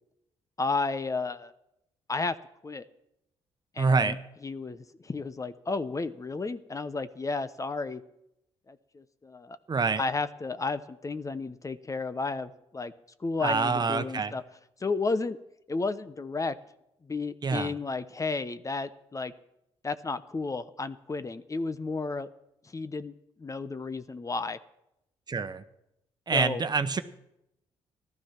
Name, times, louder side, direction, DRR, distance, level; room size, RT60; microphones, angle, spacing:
voice 1, 0.6-1.5 2.1-2.4 2.6-2.8 3.7-4.1 4.4-8.0 8.7-9.6 10.0-12.9 13.2-14.4 14.8-15.4 15.7-16.6 17.0-19.3 19.8-22.3 22.6-23.1 23.4-24.6 26.3-26.6, left 3 dB, 30° left, 13 dB, 0.8 m, -32 dB
voice 2, 3.8-4.2 9.7-10.0 13.4-14.3 17.4-17.7 25.3-25.6 26.3-27.0, right 4 dB, 40° right, 10 dB, 1.1 m, -26 dB
14.5 x 12.0 x 5.8 m, 0.83 s
supercardioid pair, 60°, 11 cm